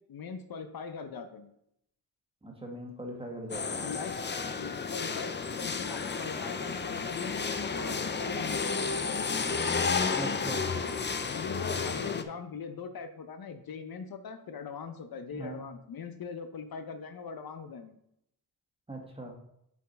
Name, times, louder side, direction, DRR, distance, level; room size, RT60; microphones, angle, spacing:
voice 1, 0.1-1.5 3.8-4.2 4.5-9.3 11.3-18.0, left 5 dB, 65° left, 8 dB, 0.8 m, -41 dB
voice 2, 2.4-3.9 10.1-10.9 15.3-15.6 18.9-19.3, right 1 dB, 15° right, 1 dB, 1.5 m, -40 dB
sound 1, 3.5-12.2, left 5 dB, 30° left, 0.6 m, -32 dB
7.2 x 4.6 x 4.2 m, 0.76 s
wide cardioid pair, 110°, 38 cm